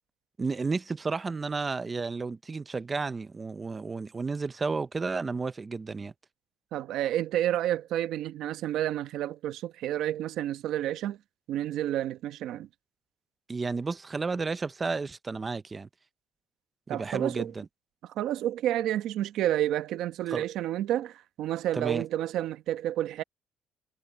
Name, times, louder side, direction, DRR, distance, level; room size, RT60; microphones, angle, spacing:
voice 1, 0.4-6.1 13.5-15.9 16.9-17.7 20.3-20.4 21.8-22.0, right 4 dB, 20° right, 0.5 m, -32 dB
voice 2, 6.7-11.2 11.5-12.7 16.9-17.5 18.1-23.2, right 12 dB, 70° right, 1.2 m, -30 dB
cardioid pair, 165°, 0 cm